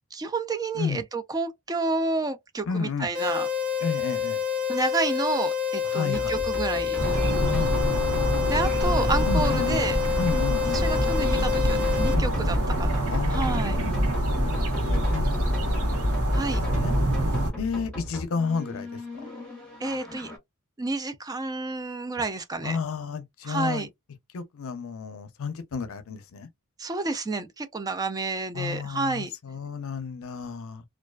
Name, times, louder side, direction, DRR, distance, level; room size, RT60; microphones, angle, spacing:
voice 1, 0.1-3.5 4.7-7.0 8.5-10.0 10.7-13.0 13.3-13.8 16.3-16.6 19.8-20.3 20.8-22.8 23.4-23.9 26.8-29.3, right 3 dB, 15° right, 0.4 m, -30 dB
voice 2, 2.7-3.1 3.8-4.4 5.8-6.3 7.4-8.6 9.3-9.8 10.1-10.8 12.1-12.3 13.1-13.9 14.2-15.3 15.6-15.8 16.7-17.0 17.6-19.0 22.6-23.9 24.3-26.5 28.5-30.8, left 5 dB, 65° left, 0.5 m, -32 dB
sound 1, 3.1-12.1, left 7 dB, 55° right, 1.2 m, -28 dB
sound 2, 6.1-20.4, left 1 dB, 5° left, 0.9 m, -37 dB
sound 3, 7.0-17.5, equal, 80° right, 1.0 m, -25 dB
2.3 x 2.3 x 2.2 m
head